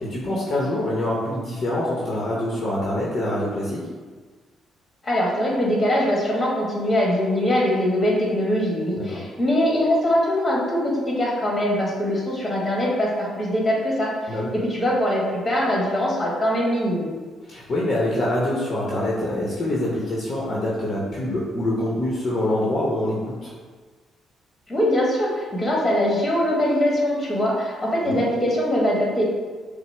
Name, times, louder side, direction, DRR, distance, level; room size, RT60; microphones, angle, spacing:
voice 1, 0.0-3.9 9.0-9.2 14.3-14.5 17.4-23.5 28.0-28.2, left 1 dB, 50° left, -5 dB, 0.8 m, -25 dB
voice 2, 5.0-17.1 24.7-29.2, left 1 dB, 25° left, -3 dB, 1.3 m, -22 dB
5.7 x 2.0 x 3.3 m, 1.4 s
cardioid pair, 90°, 0 cm